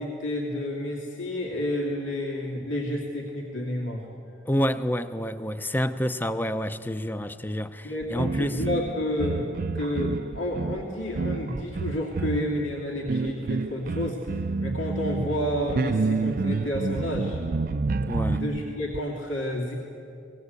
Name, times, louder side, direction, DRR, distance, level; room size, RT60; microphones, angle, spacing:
voice 1, 0.0-4.1 7.8-17.4 18.3-19.7, left 1 dB, 85° left, 2.8 m, -30 dB
voice 2, 4.4-8.6 18.1-18.4, equal, 10° left, 0.6 m, -28 dB
sound 1, 8.0-19.0, right 3 dB, 45° right, 0.4 m, -29 dB
20.0 x 18.0 x 8.1 m
head